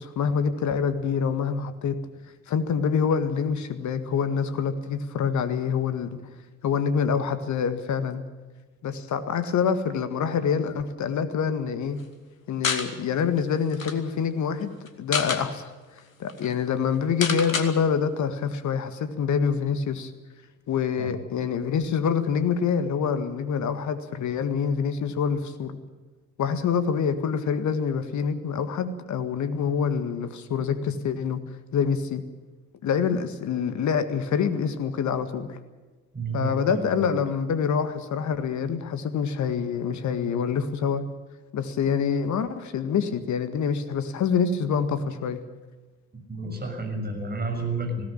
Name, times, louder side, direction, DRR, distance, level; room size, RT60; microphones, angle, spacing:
voice 1, 0.0-2.0 2.5-6.2 6.6-8.2 8.8-12.0 12.5-15.7 16.2-20.1 20.7-25.8 26.4-31.4 31.7-32.2 32.8-35.6 36.3-41.0 41.5-45.4, left 6 dB, 45° left, 10 dB, 1.8 m, -26 dB
sound 1, 12.6-12.9 13.4-13.5 13.7-14.0 14.9-15.4 16.0-16.1 16.3-16.5 17.2-17.7, left 5 dB, 90° left, 1.2 m, -27 dB
voice 2, 36.1-37.1 46.3-48.0, right 2 dB, 25° right, 3 dB, 6.7 m, -31 dB
19.5 x 17.0 x 8.9 m, 1.3 s
figure-of-eight pair, 50°, 39 cm